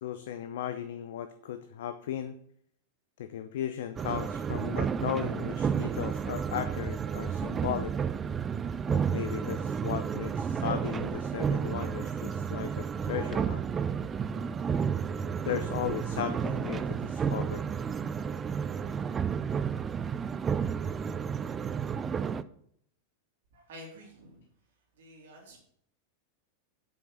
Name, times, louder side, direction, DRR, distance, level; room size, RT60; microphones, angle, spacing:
voice 1, 0.0-2.4 3.2-7.9 8.9-13.7 15.4-17.6, left 10 dB, 55° left, 10 dB, 0.6 m, -36 dB
sound 1, 4.0-22.4, right 7 dB, 20° right, 0.4 m, -31 dB
voice 2, 23.5-24.4 25.0-25.6, equal, 55° right, 0 dB, 3.6 m, -49 dB
8.1 x 7.1 x 6.3 m, 0.67 s
figure-of-eight pair, 90°, 0 cm